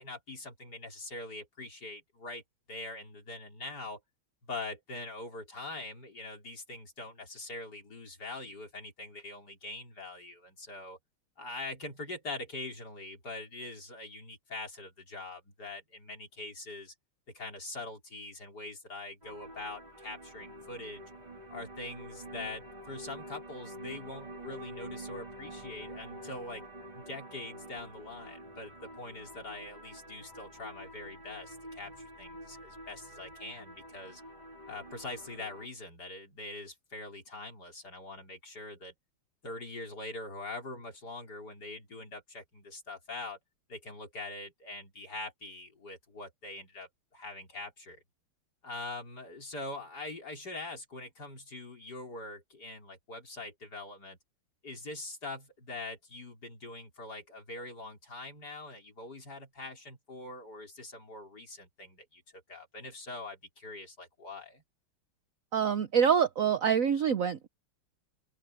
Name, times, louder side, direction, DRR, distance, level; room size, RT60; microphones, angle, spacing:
voice 1, 0.0-2.4 2.7-4.0 4.4-11.0 11.4-16.9 17.3-21.0 21.5-26.7 26.9-31.9 32.2-34.2 34.7-38.9 39.4-43.4 43.7-48.0 48.6-54.2 54.6-64.6, left 2 dB, 45° left, 5.2 m, -43 dB
sound 1, 19.2-35.7, right 1 dB, 20° right, 2.3 m, -47 dB
voice 2, 65.5-67.5, right 7 dB, 85° right, 0.7 m, -26 dB
open air
omnidirectional pair, 2.4 m